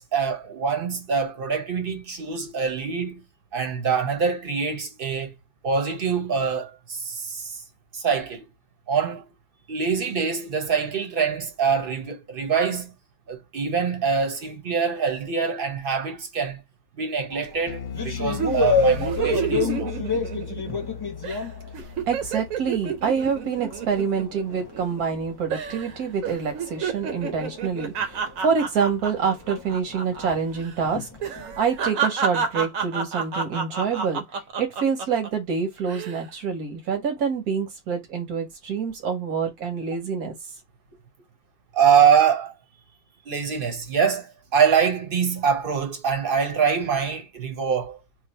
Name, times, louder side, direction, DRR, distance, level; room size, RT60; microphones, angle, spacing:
voice 1, 0.0-3.2 3.5-5.3 5.6-7.6 7.9-8.5 8.9-9.2 9.7-12.9 13.3-16.6 17.0-19.9 41.7-42.5 43.3-48.0, right 6 dB, 45° right, 0.9 m, -24 dB
sound 1, 17.3-22.5 22.8-31.7, left 3 dB, 25° left, 0.6 m, -30 dB
Bass guitar, 17.7-24.1, left 7 dB, 60° left, 0.8 m, -37 dB
sound 2, 18.4-20.9 21.2-21.4 21.7-25.2 25.5-25.9 26.2-30.3 30.6-30.7 31.2-35.3 35.8-36.2, right 6 dB, 70° right, 1.1 m, -30 dB
voice 2, 21.8-40.3, right 6 dB, 85° right, 1.5 m, -27 dB
3.2 x 2.3 x 4.2 m
omnidirectional pair, 1.6 m